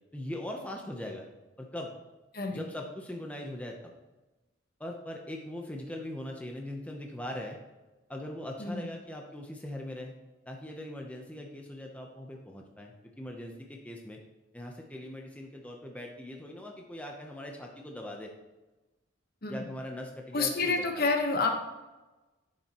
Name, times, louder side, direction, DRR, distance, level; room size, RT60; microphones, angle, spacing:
voice 1, 0.1-1.3 1.6-1.9 2.5-3.9 4.8-7.6 8.1-10.1 10.5-14.2 14.5-18.3 19.5-21.1, left 1 dB, 5° left, 1 dB, 0.7 m, -40 dB
voice 2, 20.3-21.5, left 3 dB, 50° left, 3 dB, 1.1 m, -28 dB
10.5 x 7.0 x 3.0 m, 1.1 s
head